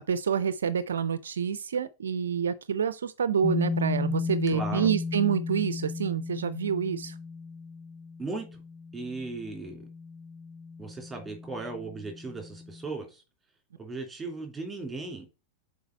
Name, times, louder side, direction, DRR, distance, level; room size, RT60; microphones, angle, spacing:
voice 1, 0.1-7.2, right 7 dB, 65° right, 0.4 m, -28 dB
sound 1, 3.4-12.9, left 4 dB, 15° left, 0.3 m, -35 dB
voice 2, 4.5-4.9 8.2-8.6 8.9-9.8 10.8-13.2 13.8-15.3, right 3 dB, 10° right, 2.9 m, -37 dB
7.1 x 4.5 x 4.5 m
figure-of-eight pair, 90°, 0 cm